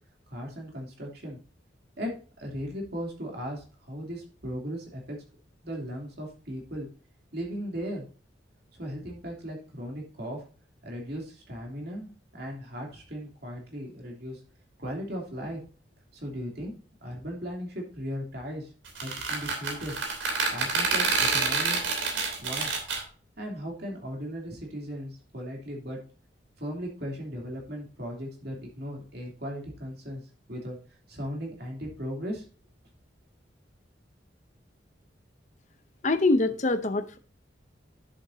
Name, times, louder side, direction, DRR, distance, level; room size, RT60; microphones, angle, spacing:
voice 1, 0.3-1.4 2.0-2.1 2.4-5.2 5.6-6.9 7.3-8.1 8.7-10.4 10.8-14.4 14.8-15.6 16.1-16.7 17.0-18.7 19.0-20.0 20.5-21.8 22.4-22.8 23.4-26.0 26.6-30.2 30.5-30.8 31.1-32.4, equal, 55° right, 3.0 m, -37 dB
sound 1, 18.9-23.0, right 4 dB, 80° right, 3.2 m, -27 dB
voice 2, 36.0-37.2, left 2 dB, 40° left, 0.7 m, -24 dB
11.0 x 7.1 x 2.7 m
head